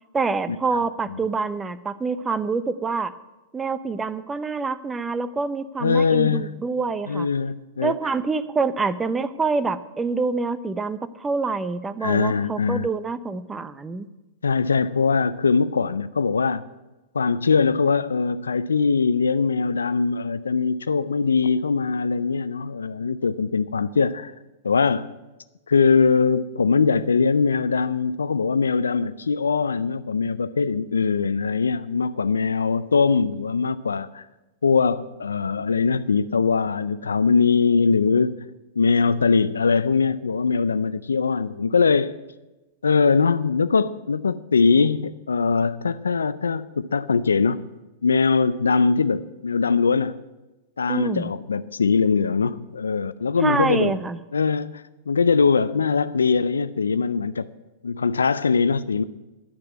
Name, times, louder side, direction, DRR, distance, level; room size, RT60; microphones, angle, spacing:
voice 1, 0.1-3.1 3.5-7.3 7.8-14.1 50.9-51.3 53.4-54.2, right 4 dB, 15° right, 0.7 m, -26 dB
voice 2, 5.8-6.5 7.1-8.0 12.0-12.9 14.4-16.6 17.1-24.3 24.6-25.1 25.7-34.3 34.6-38.5 38.8-42.2 42.8-47.7 48.0-50.2 50.8-54.0 54.3-57.5 57.8-59.0, left 5 dB, 90° left, 0.4 m, -21 dB
10.5 x 6.7 x 9.2 m
hypercardioid pair, 110°, 0 cm